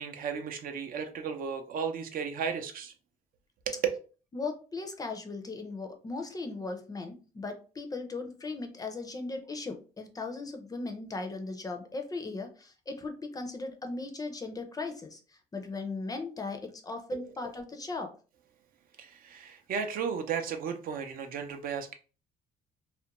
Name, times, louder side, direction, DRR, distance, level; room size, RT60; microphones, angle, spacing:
voice 1, 0.0-2.9 3.7-3.8 17.1-17.2 19.0-21.9, right 6 dB, 60° right, 0.5 m, -35 dB
voice 2, 4.3-15.2 15.5-18.1, left 3 dB, 20° left, 0.5 m, -38 dB
2.4 x 2.1 x 2.9 m
cardioid pair, 110°, 17 cm